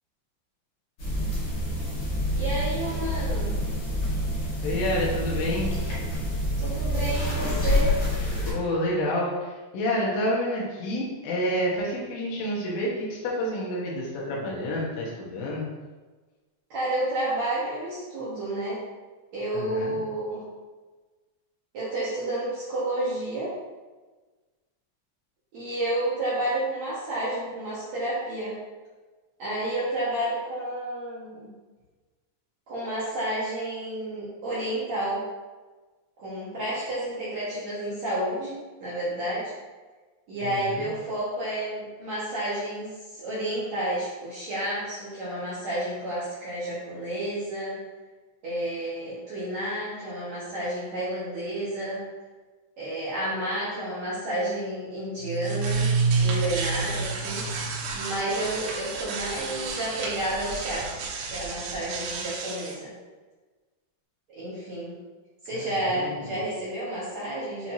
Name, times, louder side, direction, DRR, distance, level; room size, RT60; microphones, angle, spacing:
sound 1, 1.0-8.5, equal, 60° left, 1.5 m, -27 dB
voice 1, 2.3-3.6 6.6-7.9 16.7-18.8 19.3-20.4 21.7-23.5 25.5-28.6 29.4-31.5 32.7-35.2 36.2-39.5 40.3-47.8 48.4-52.0 52.8-55.9 56.2-57.4 57.9-62.9 64.3-64.9 65.4-67.7, right 1 dB, 65° right, -10 dB, 1.7 m, -30 dB
voice 2, 4.6-5.8 8.5-15.7 19.5-20.0 40.4-40.9 65.5-66.4, left 1 dB, 80° left, -4 dB, 3.8 m, -29 dB
sound 2, 55.2-62.7, right 4 dB, 85° right, 3.5 m, -29 dB
8.8 x 4.6 x 2.8 m, 1.3 s
omnidirectional pair, 5.6 m